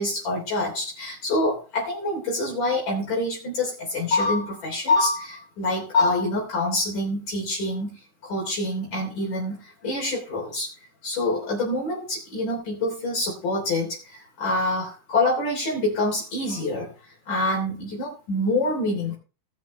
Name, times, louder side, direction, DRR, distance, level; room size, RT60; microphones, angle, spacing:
voice 1, 0.0-10.7 11.0-16.9 17.3-19.2, left 2 dB, 55° left, -4 dB, 4.7 m, -26 dB
19.0 x 7.4 x 3.2 m, 0.33 s
omnidirectional pair, 4.4 m